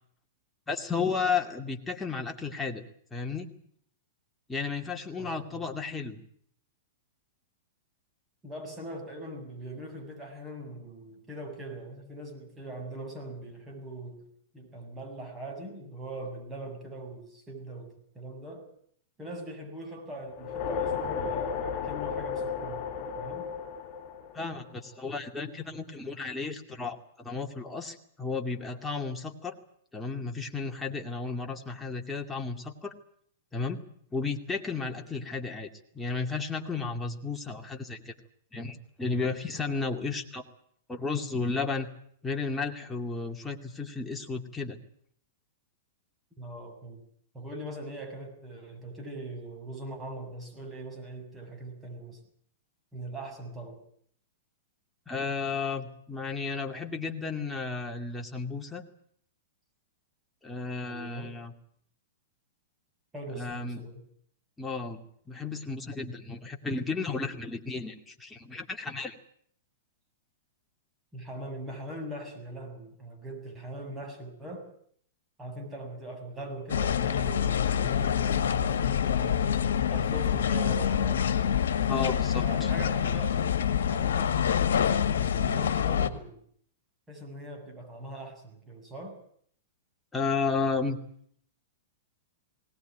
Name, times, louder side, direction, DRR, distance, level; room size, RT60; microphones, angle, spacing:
voice 1, 0.7-2.8 3.1-3.5 4.5-6.2 24.3-29.6 29.9-32.9 33.5-33.8 34.1-35.7 35.9-38.1 38.5-40.4 40.9-41.9 42.2-44.8 55.1-58.8 60.4-61.5 63.4-63.8 64.6-65.0 65.3-69.2 81.9-82.7 90.1-91.0, left 4 dB, 10° left, 2 dB, 2.4 m, -33 dB
voice 2, 5.2-5.7 8.4-14.2 14.5-18.7 19.2-23.5 46.4-47.0 47.3-52.2 52.9-53.8 60.8-61.3 63.1-64.0 71.1-74.7 75.4-81.3 82.4-83.4 83.9-86.4 87.1-89.2, right 1 dB, 15° right, 3 dB, 7.3 m, -41 dB
sound 1, 20.3-24.9, left 6 dB, 45° left, 3.9 m, -34 dB
sound 2, 76.7-86.1, left 8 dB, 65° left, 1.8 m, -26 dB
20.5 x 18.5 x 9.3 m, 0.64 s
figure-of-eight pair, 105°, 0 cm